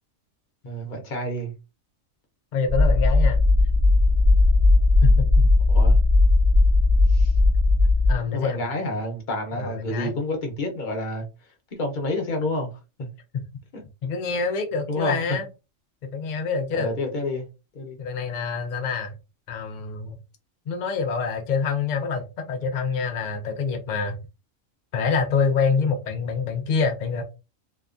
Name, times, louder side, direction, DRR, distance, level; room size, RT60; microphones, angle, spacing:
voice 1, 0.6-1.5 5.7-6.0 7.1-7.3 8.3-11.3 11.8-13.1 13.7-13.8 14.9-15.2 16.7-17.5 17.7-18.0, left 1 dB, 45° left, 0.8 m, -29 dB
voice 2, 2.5-3.4 5.0-5.5 8.1-8.6 9.5-10.1 13.3-13.4 14.0-15.5 16.1-17.0 18.0-19.1 19.5-20.2 20.7-24.2 24.9-27.2, left 5 dB, 90° left, 0.4 m, -26 dB
sound 1, 2.7-8.1, left 2 dB, 25° right, 1.1 m, -17 dB
2.8 x 2.2 x 2.4 m
omnidirectional pair, 1.4 m